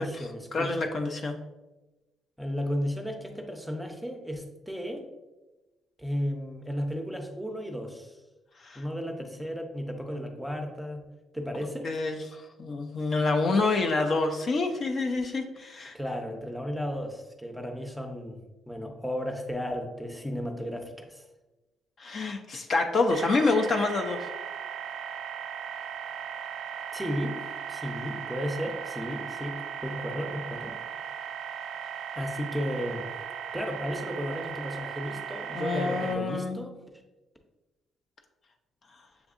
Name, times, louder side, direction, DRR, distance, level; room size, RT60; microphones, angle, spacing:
voice 1, 0.0-0.8 2.4-5.1 6.0-8.2 8.7-11.1 11.3-11.9 15.9-18.4 18.7-21.2 26.9-27.4 27.7-30.8 32.1-33.1 33.5-36.8, equal, ahead, 3 dB, 0.6 m, -34 dB
voice 2, 0.5-1.4 8.6-8.8 11.8-16.0 22.0-24.3 35.5-36.6, left 3 dB, 50° left, 4 dB, 0.5 m, -27 dB
sound 1, 23.1-36.1, right 8 dB, 90° right, 0.4 m, -37 dB
6.9 x 2.6 x 2.5 m, 1.1 s
cardioid pair, 90°, 0 cm